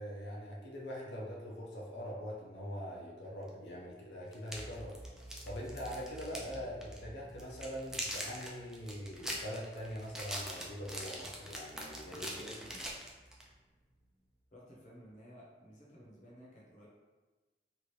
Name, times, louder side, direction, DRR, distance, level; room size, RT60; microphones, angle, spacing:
voice 1, 0.0-5.0 5.4-12.5, equal, 70° left, -3 dB, 0.6 m, -43 dB
sound 1, 3.5-3.6 4.3-6.5 6.8-7.0 7.4-13.5, equal, 5° right, 0.3 m, -42 dB
sound 2, 4.5-14.3, right 1 dB, 60° right, 0.8 m, -54 dB
voice 2, 12.2-12.8 14.5-16.9, equal, 45° left, -5 dB, 0.9 m, -55 dB
2.9 x 2.5 x 3.1 m, 1.2 s
head